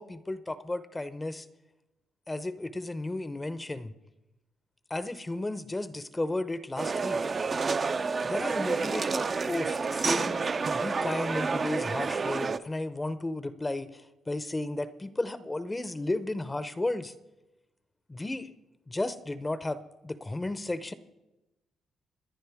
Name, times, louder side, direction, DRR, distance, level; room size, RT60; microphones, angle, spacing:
voice 1, 0.0-1.5 2.3-3.9 4.9-7.2 8.2-10.4 10.7-17.1 18.1-18.5 18.9-20.9, left 2 dB, 15° left, 13 dB, 0.7 m, -34 dB
sound 1, 6.8-12.6, right 4 dB, 35° right, 0.5 m, -29 dB
27.0 x 10.5 x 3.5 m, 1.0 s
cardioid pair, 90°, 0 cm